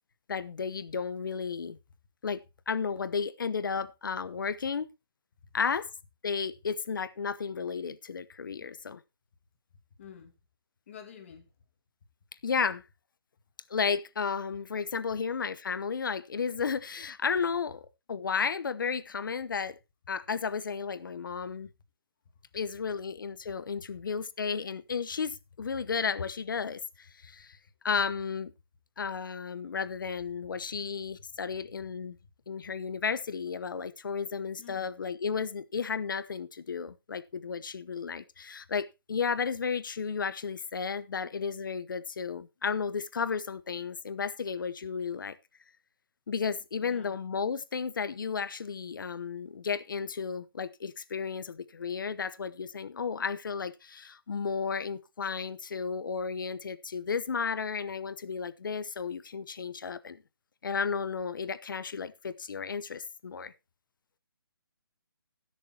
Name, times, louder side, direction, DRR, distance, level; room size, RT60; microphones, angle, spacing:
voice 1, 0.3-1.8 2.2-4.9 5.5-5.9 6.2-9.0 12.4-12.8 13.7-17.8 18.1-19.8 20.1-21.7 22.5-27.6 27.8-28.5 29.0-32.2 32.5-45.3 46.3-60.2 60.6-63.5, left 5 dB, 55° left, 0.9 m, -33 dB
voice 2, 10.0-10.3 10.9-11.5 31.2-31.3 34.6-34.9 46.8-47.2, left 8 dB, 30° left, 2.0 m, -49 dB
20.5 x 6.8 x 2.9 m
hypercardioid pair, 165°, 13 cm